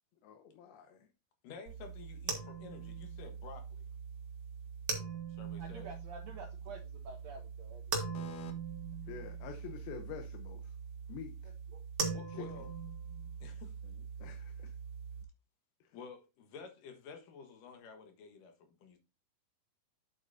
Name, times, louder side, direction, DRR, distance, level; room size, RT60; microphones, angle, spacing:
voice 1, 0.2-1.1 9.1-10.7 11.1-11.5 12.3-12.5 13.8-14.7 15.8-16.0, left 7 dB, 90° left, 2.8 m, -48 dB
voice 2, 1.4-3.8 5.3-5.9 8.1-8.5 12.1-12.7 13.4-13.7 15.9-19.0, left 5 dB, 70° left, 2.9 m, -51 dB
sound 1, 1.7-15.2, right 6 dB, 50° right, 2.2 m, -42 dB
voice 3, 5.6-7.8 8.1-8.2 11.7-11.8, right 4 dB, 75° right, 1.6 m, -49 dB
8.7 x 7.7 x 2.7 m
omnidirectional pair, 4.2 m